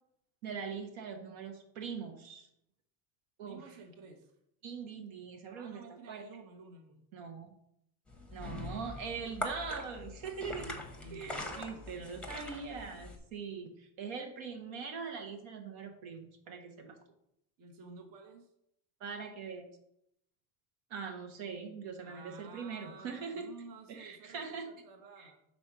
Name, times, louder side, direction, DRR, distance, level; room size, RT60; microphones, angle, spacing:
voice 1, 0.4-2.5 3.4-3.6 4.6-5.8 6.1-6.2 7.1-7.5 8.3-10.8 11.1-17.0 19.0-19.7 20.9-23.5 23.9-24.7 25.2-25.3, right 5 dB, 70° right, 4 dB, 1.3 m, -42 dB
voice 2, 3.4-4.3 5.5-7.0 11.0-11.9 17.6-18.5 22.0-25.4, right 4 dB, 45° right, 3 dB, 1.1 m, -52 dB
sound 1, 8.1-13.2, left 2 dB, ahead, 0.8 m, -43 dB
5.3 x 4.1 x 6.0 m, 0.78 s
cardioid pair, 130°, 47 cm